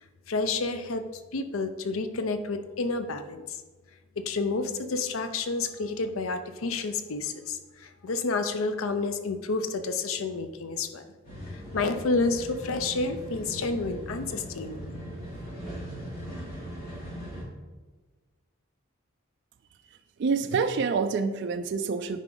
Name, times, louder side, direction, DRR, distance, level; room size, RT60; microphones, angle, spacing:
voice 1, 0.3-1.0 1.3-3.6 4.2-11.1 11.7-14.8, left 3 dB, 80° left, 10 dB, 0.6 m, -30 dB
sound 1, 11.2-17.4, equal, 45° left, 2.2 m, -39 dB
voice 2, 20.2-22.2, right 5 dB, 55° right, 8 dB, 0.4 m, -27 dB
9.1 x 5.0 x 3.8 m, 1.3 s
head